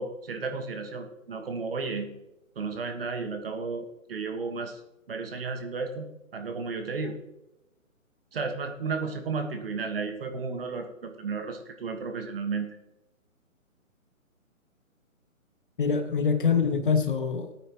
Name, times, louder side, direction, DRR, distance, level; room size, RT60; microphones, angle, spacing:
voice 1, 0.0-2.1 2.5-4.8 5.1-7.2 8.3-12.7, right 4 dB, 45° right, 5 dB, 1.6 m, -33 dB
voice 2, 15.8-17.6, left 6 dB, 40° left, 8 dB, 1.0 m, -25 dB
18.5 x 9.1 x 3.1 m, 0.94 s
hypercardioid pair, 165°, 41 cm